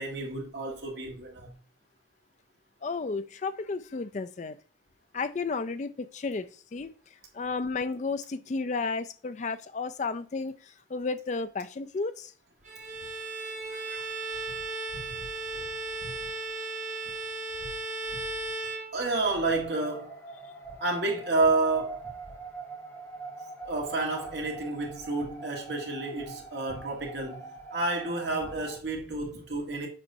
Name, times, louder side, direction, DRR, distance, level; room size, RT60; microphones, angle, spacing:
voice 1, 0.0-1.5 14.9-15.0 15.5-15.6 16.0-16.1 18.9-20.2 20.8-22.2 23.6-29.9, right 2 dB, 80° right, 1.5 m, -30 dB
voice 2, 2.8-4.6 5.1-6.9 7.3-12.3 13.7-14.0, left 4 dB, 40° left, 0.4 m, -33 dB
Bowed string instrument, 12.6-19.4, right 3 dB, 45° right, 1.6 m, -36 dB
sound 1, 19.2-28.8, right 3 dB, 15° left, 1.7 m, -44 dB
7.4 x 5.2 x 2.7 m
head